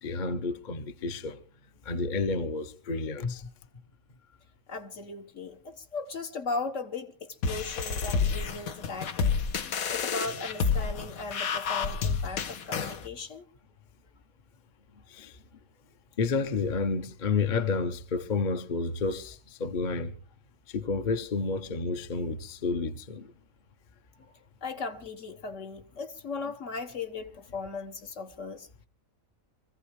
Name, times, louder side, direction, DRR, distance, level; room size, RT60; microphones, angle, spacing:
voice 1, 0.0-1.4 1.8-3.5 15.1-15.4 16.2-20.1 20.7-23.3, left 4 dB, 40° left, 0.8 m, -30 dB
voice 2, 4.7-9.3 9.9-13.5 24.1-28.9, left 4 dB, 65° left, 1.6 m, -37 dB
sound 1, 7.4-13.0, left 5 dB, 90° left, 1.4 m, -29 dB
24.5 x 15.0 x 3.2 m
omnidirectional pair, 1.4 m